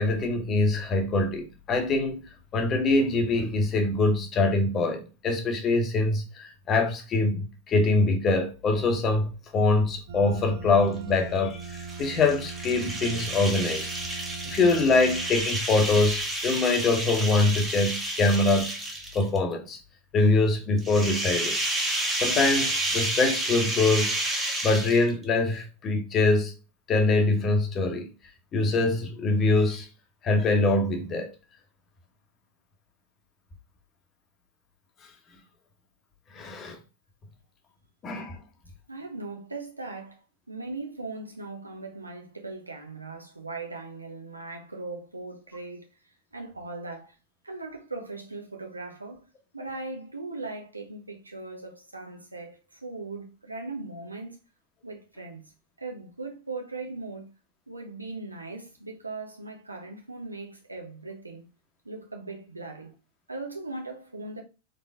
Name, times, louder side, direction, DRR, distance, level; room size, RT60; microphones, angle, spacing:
voice 1, 0.0-2.2 2.5-18.7 19.1-19.8 20.1-21.5 22.1-24.2 24.6-26.5 26.9-28.1 28.5-29.9 30.2-31.3 36.3-36.8 38.0-38.4, left 3 dB, 30° left, 1.1 m, -24 dB
sound 1, 10.1-15.3, right 5 dB, 55° right, 0.7 m, -40 dB
sound 2, 11.6-19.4 20.8-25.2, right 1 dB, 15° right, 1.4 m, -30 dB
voice 2, 38.9-40.2 40.5-45.9 46.3-47.1 47.4-49.2 49.5-54.4 54.8-55.4 55.8-57.3 57.7-61.4 61.8-62.9 63.3-64.4, right 3 dB, 80° right, 1.1 m, -39 dB
3.9 x 3.8 x 3.5 m
figure-of-eight pair, 90°, 0 cm